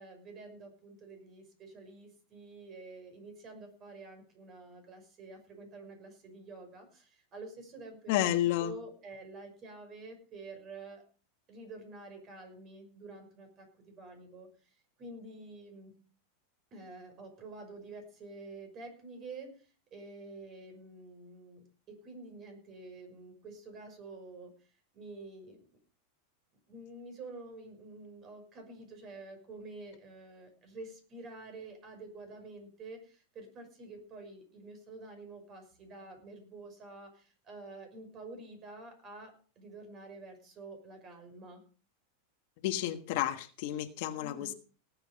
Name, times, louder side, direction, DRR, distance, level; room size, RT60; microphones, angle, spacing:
voice 1, 0.0-8.2 8.6-11.0 11.5-15.9 16.7-25.6 26.7-41.6 44.2-44.5, right 3 dB, 30° right, 5 dB, 5.8 m, -49 dB
voice 2, 8.1-8.7 42.6-44.5, left 13 dB, 55° left, 8 dB, 1.4 m, -31 dB
18.5 x 8.1 x 5.2 m, 0.38 s
supercardioid pair, 145°, 0 cm